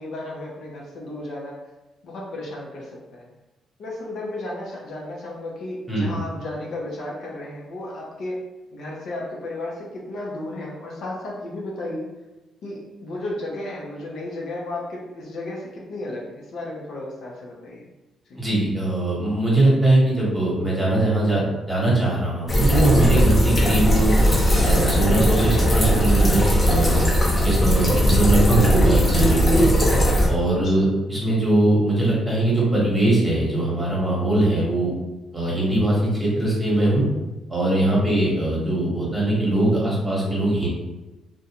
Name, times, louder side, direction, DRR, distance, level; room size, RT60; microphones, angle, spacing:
voice 1, 0.0-1.6 2.0-3.3 3.8-8.4 8.7-12.1 12.6-17.9 18.3-18.4 30.6-30.9, left 1 dB, 65° left, -3 dB, 0.6 m, -33 dB
voice 2, 18.4-21.4 21.7-24.1 24.6-27.0 27.4-29.7 30.3-34.9 35.3-37.0 37.5-40.7, right 1 dB, 15° right, -5 dB, 1.1 m, -21 dB
sound 1, 22.5-30.3, equal, 30° left, 0.8 m, -18 dB
2.4 x 2.2 x 2.9 m, 1.1 s
cardioid pair, 90°, 0 cm